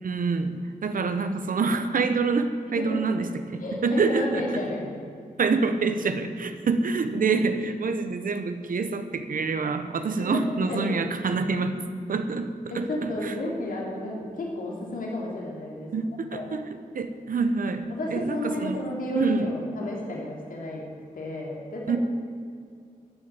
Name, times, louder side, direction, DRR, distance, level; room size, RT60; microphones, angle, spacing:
voice 1, 0.0-4.4 5.4-11.8 12.1-12.9 13.2-13.3 15.9-16.6 16.9-17.8 18.1-18.8 19.1-19.5 21.9-22.0, right 4 dB, 75° right, 9 dB, 1.1 m, -26 dB
voice 2, 2.7-3.0 3.6-4.9 10.2-10.9 12.7-15.9 16.3-16.5 17.9-20.8 21.1-22.0, left 1 dB, 75° left, -2 dB, 3.3 m, -32 dB
14.0 x 6.6 x 9.1 m, 2.2 s
cardioid pair, 65°, 14 cm